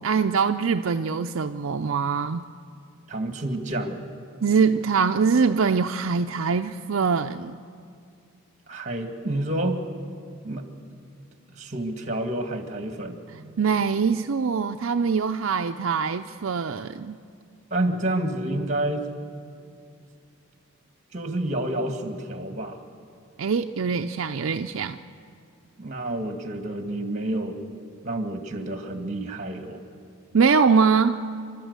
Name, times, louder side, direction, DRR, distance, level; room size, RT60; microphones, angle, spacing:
voice 1, 0.0-2.5 4.4-7.6 13.3-17.2 23.4-25.0 30.3-31.2, right 5 dB, 70° right, 6 dB, 0.5 m, -23 dB
voice 2, 3.1-4.0 8.7-9.9 10.4-10.6 11.6-13.2 17.7-19.1 21.1-22.8 25.8-27.6 28.0-29.8, right 1 dB, 35° right, 5 dB, 2.0 m, -29 dB
29.5 x 12.5 x 8.1 m, 2.3 s
head